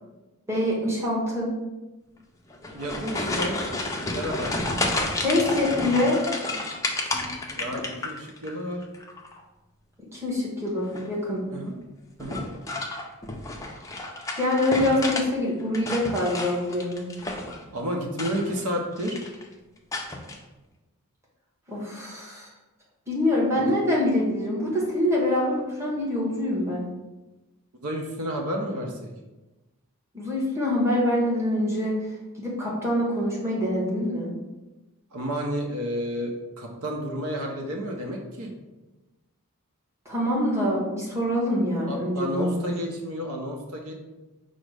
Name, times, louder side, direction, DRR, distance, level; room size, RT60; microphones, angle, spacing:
voice 1, 0.5-1.5 5.2-6.2 10.1-11.4 14.4-17.0 21.7-22.5 23.1-26.9 30.1-32.0 32.4-34.3 40.0-42.7, left 1 dB, 10° right, -5 dB, 1.1 m, -25 dB
sound 1, 2.5-8.5 8.8-9.4 10.8-11.2 12.2-15.3 15.6-17.6 18.1-18.7 19.0-19.4 19.9-20.4, left 2 dB, 15° left, 0.4 m, -31 dB
voice 2, 2.7-3.6 4.1-4.5 7.6-8.8 11.5-11.7 12.2-12.4 17.7-19.2 23.5-23.6 27.8-29.1 35.1-38.5 41.9-43.9, equal, 75° right, 1 dB, 0.7 m, -31 dB
5.2 x 2.1 x 4.7 m, 1.1 s
head